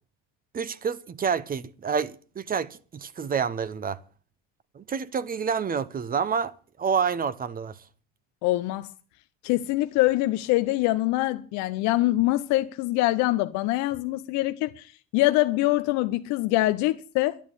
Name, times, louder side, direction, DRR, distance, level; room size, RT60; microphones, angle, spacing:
voice 1, 0.5-4.0 4.7-6.5 6.8-7.8, right 6 dB, 30° right, 1.0 m, -28 dB
voice 2, 8.4-8.9 9.4-17.4, left 17 dB, 75° left, 0.9 m, -24 dB
11.0 x 10.0 x 8.5 m
supercardioid pair, 100°, 29 cm